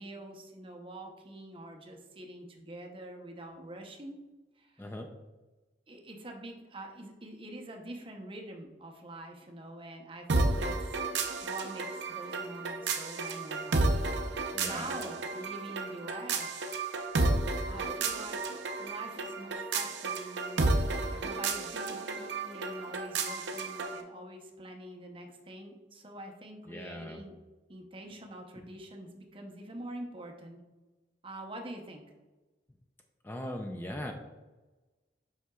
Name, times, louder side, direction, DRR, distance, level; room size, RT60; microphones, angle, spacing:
voice 1, 0.0-4.2 4.6-4.9 5.9-13.9 14.6-16.7 17.7-18.4 18.8-20.7 21.1-27.3 27.7-30.6 31.2-32.0, right 1 dB, 30° right, 2 dB, 0.7 m, -45 dB
sound 1, 10.3-24.0, right 3 dB, 80° right, 0.6 m, -32 dB
voice 2, 14.5-14.9 26.7-27.2 33.2-34.1, left 1 dB, 10° left, 3 dB, 0.4 m, -39 dB
7.6 x 5.6 x 2.3 m, 1.2 s
head